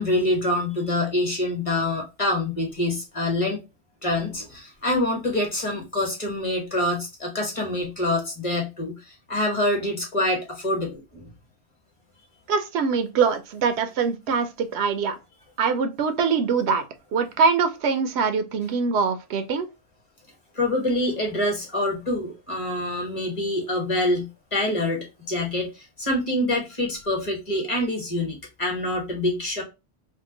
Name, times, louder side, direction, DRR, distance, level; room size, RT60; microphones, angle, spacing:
voice 1, 0.0-3.6 4.0-11.3 20.5-29.6, left 1 dB, 30° left, 1.0 m, -26 dB
voice 2, 12.5-15.1 15.6-16.8 17.1-19.7, right 5 dB, 85° right, 0.8 m, -23 dB
2.8 x 2.2 x 3.6 m
omnidirectional pair, 1.1 m